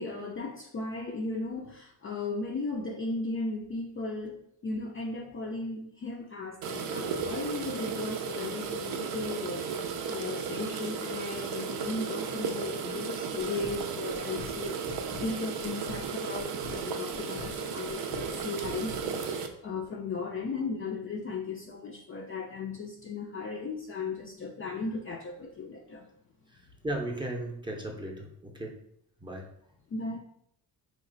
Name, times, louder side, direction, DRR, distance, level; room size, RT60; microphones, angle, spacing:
voice 1, 0.0-26.1 29.9-30.2, left 3 dB, 30° left, 1 dB, 0.4 m, -36 dB
sound 1, 6.6-19.5, right 6 dB, 60° right, 0.5 m, -35 dB
sound 2, 13.4-19.3, left 5 dB, 80° left, 0.8 m, -46 dB
voice 2, 26.8-28.7 29.2-29.4, right 1 dB, 10° right, 0 dB, 0.6 m, -35 dB
3.1 x 2.1 x 3.8 m, 0.70 s
supercardioid pair, 75°, 42 cm